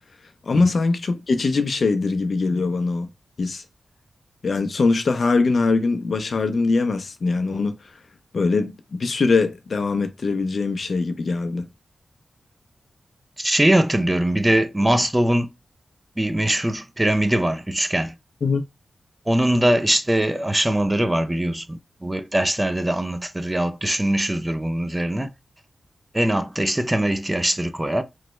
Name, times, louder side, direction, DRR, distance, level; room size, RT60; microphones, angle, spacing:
voice 1, 0.4-3.1 3.4-3.6 4.4-7.7 8.3-11.7 18.4-18.6, left 3 dB, 65° left, 0.5 m, -22 dB
voice 2, 13.4-15.5 16.2-18.1 19.3-25.3 26.1-28.0, right 1 dB, 15° right, 0.4 m, -21 dB
3.1 x 2.2 x 3.0 m
cardioid pair, 60°, 0 cm